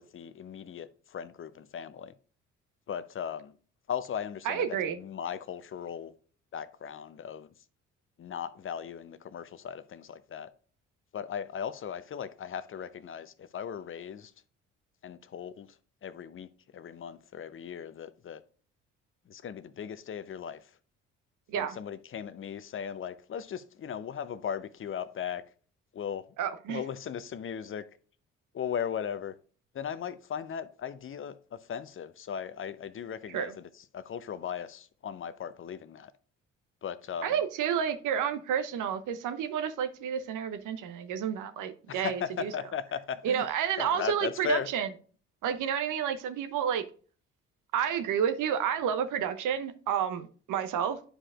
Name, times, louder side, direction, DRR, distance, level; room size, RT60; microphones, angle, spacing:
voice 1, 0.0-2.1 2.9-3.6 3.9-4.7 5.0-6.1 6.5-7.5 8.2-10.5 11.1-14.3 15.0-15.7 16.0-18.4 19.3-20.6 21.5-25.4 25.9-26.2 26.7-27.9 28.5-29.3 29.7-36.1 36.8-37.4 41.9-43.5 43.8-44.7, left 8 dB, 35° left, 0.6 m, -37 dB
voice 2, 4.4-5.0 21.5-21.8 26.4-26.8 33.3-33.6 37.2-42.5 43.2-44.9 45.4-46.8 47.7-51.1, right 8 dB, 60° right, 0.9 m, -30 dB
11.0 x 4.9 x 2.4 m
hypercardioid pair, 45°, 36 cm